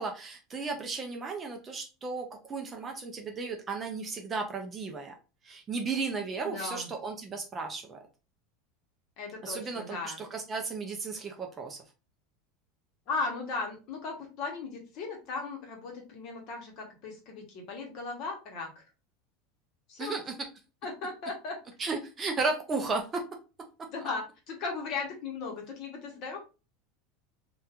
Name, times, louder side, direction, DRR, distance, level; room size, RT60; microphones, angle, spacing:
voice 1, 0.0-5.1 5.4-8.0 9.4-11.8 20.0-20.5 21.8-23.2, right 4 dB, 15° right, 3 dB, 0.3 m, -34 dB
voice 2, 6.4-6.9 9.2-10.2 13.1-18.8 19.9-20.1 20.8-21.6 23.9-26.4, left 4 dB, 40° left, 1 dB, 0.8 m, -37 dB
2.9 x 2.2 x 2.3 m, 0.31 s
supercardioid pair, 175°, 0 cm